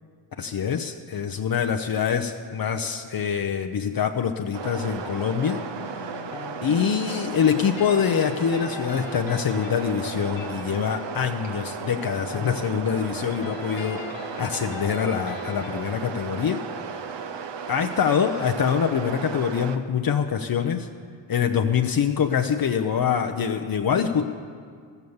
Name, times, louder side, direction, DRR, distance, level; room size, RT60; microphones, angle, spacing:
voice 1, 0.4-5.6 6.6-14.0 14.4-16.6 17.0-17.1 17.7-20.9 21.3-24.2, left 7 dB, 50° left, 4 dB, 0.7 m, -25 dB
sound 1, 4.5-19.8, right 6 dB, 65° right, 0.9 m, -35 dB
sound 2, 5.6-15.9, left 4 dB, 70° left, 1.1 m, -41 dB
13.0 x 8.1 x 7.1 m, 2.1 s
cardioid pair, 55°, 47 cm